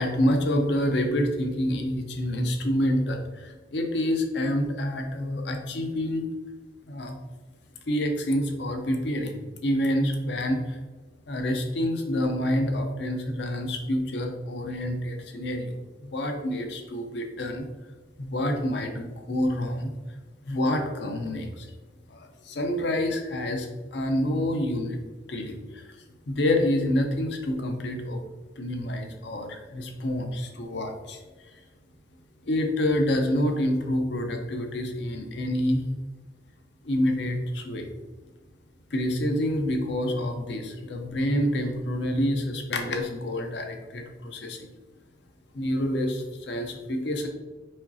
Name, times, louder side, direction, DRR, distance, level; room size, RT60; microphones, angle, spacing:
voice 1, 0.0-6.3 6.9-7.2 7.9-10.8 11.3-17.7 18.2-19.9 20.4-21.7 22.1-25.0 25.3-28.2 28.6-31.2 31.5-31.6 32.4-35.8 36.8-37.9 38.9-44.7 45.5-47.3, left 1 dB, 70° left, 4 dB, 0.6 m, -27 dB
4.9 x 3.0 x 2.8 m, 1.2 s
head